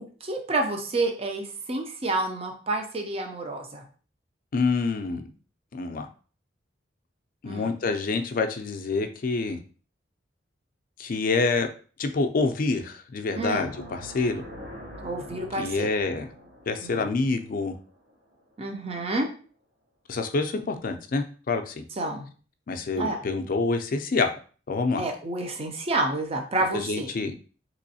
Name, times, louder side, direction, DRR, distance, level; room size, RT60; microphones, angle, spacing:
voice 1, 0.0-3.8 7.4-7.7 13.3-13.7 15.0-15.9 16.8-17.0 18.6-19.3 22.0-22.3 23.0-23.2 25.0-27.1, right 2 dB, 35° right, 4 dB, 0.5 m, -29 dB
voice 2, 4.5-5.3 5.7-6.1 7.4-9.6 11.0-11.7 12.0-14.4 15.6-16.3 16.7-17.7 20.1-21.8 22.7-24.3 24.7-25.0 26.7-27.3, left 3 dB, 50° left, 6 dB, 0.4 m, -27 dB
sound 1, 13.4-18.5, equal, 60° right, 0.8 m, -45 dB
3.4 x 3.0 x 2.7 m, 0.40 s
head